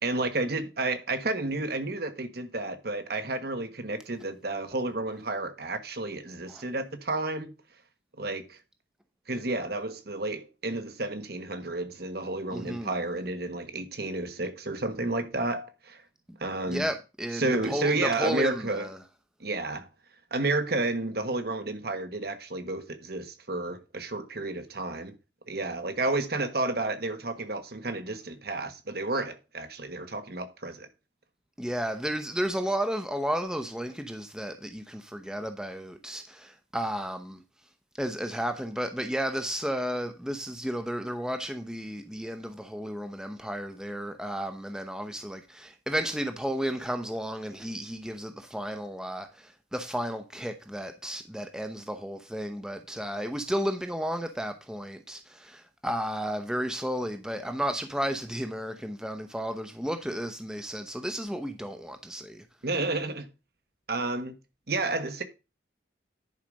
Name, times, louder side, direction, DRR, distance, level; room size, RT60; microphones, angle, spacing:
voice 1, 0.0-7.5 8.2-8.6 9.3-16.0 16.4-16.9 17.3-18.9 19.4-19.9 20.3-25.2 25.5-30.9 62.6-63.3 63.9-64.3 64.7-65.2, right 2 dB, 55° right, 1.3 m, -31 dB
voice 2, 12.5-12.9 16.7-19.0 31.6-37.4 38.0-62.4, equal, 5° right, 0.8 m, -33 dB
10.5 x 4.9 x 5.3 m
head